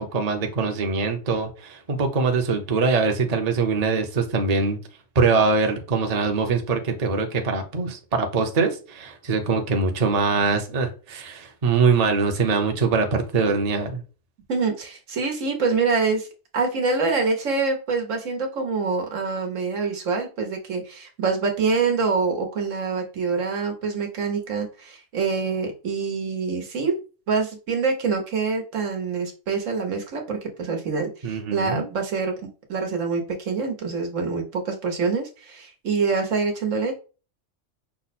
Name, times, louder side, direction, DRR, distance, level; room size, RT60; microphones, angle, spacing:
voice 1, 0.0-4.8 5.1-14.0 31.2-31.9, right 4 dB, 35° right, 4 dB, 0.8 m, -23 dB
voice 2, 14.5-16.3 16.5-26.9 27.3-32.3 32.7-37.0, right 4 dB, 80° right, 2 dB, 1.4 m, -25 dB
5.8 x 2.2 x 4.1 m, 0.34 s
omnidirectional pair, 1.3 m